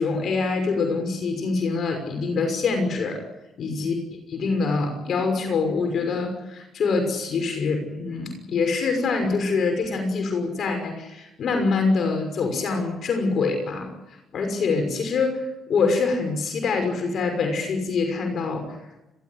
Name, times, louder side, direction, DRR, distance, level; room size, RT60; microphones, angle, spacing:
voice 1, 0.0-3.2 3.6-3.9 4.3-18.8, left 4 dB, 60° left, 5 dB, 6.0 m, -25 dB
30.0 x 14.0 x 9.8 m, 0.96 s
cardioid pair, 90°, 0 cm